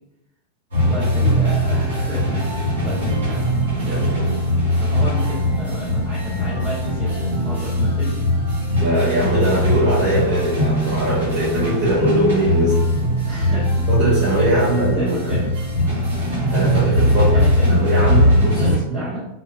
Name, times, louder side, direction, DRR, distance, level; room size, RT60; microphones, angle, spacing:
sound 1, 0.7-18.8, equal, 70° right, 1.4 m, -20 dB
voice 1, 0.9-3.5 4.8-8.2 13.2-13.8 14.4-15.5 17.1-19.3, equal, 20° right, -14 dB, 1.2 m, -32 dB
voice 2, 3.9-4.4 8.8-12.9 13.9-15.3 16.5-17.3 17.7-19.0, right 1 dB, 45° right, -8 dB, 0.8 m, -21 dB
2.6 x 2.3 x 2.2 m, 0.84 s
figure-of-eight pair, 90°, 0 cm